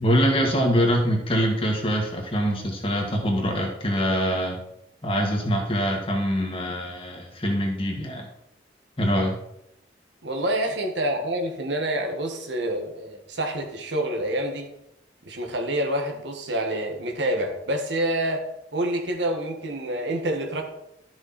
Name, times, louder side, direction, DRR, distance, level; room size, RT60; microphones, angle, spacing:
voice 1, 0.0-4.6 5.0-8.3 9.0-9.4, equal, 30° left, 1 dB, 2.0 m, -24 dB
voice 2, 10.2-14.7 15.3-18.4 18.7-20.6, right 1 dB, 75° right, 2 dB, 1.8 m, -27 dB
12.5 x 6.4 x 4.3 m, 0.84 s
head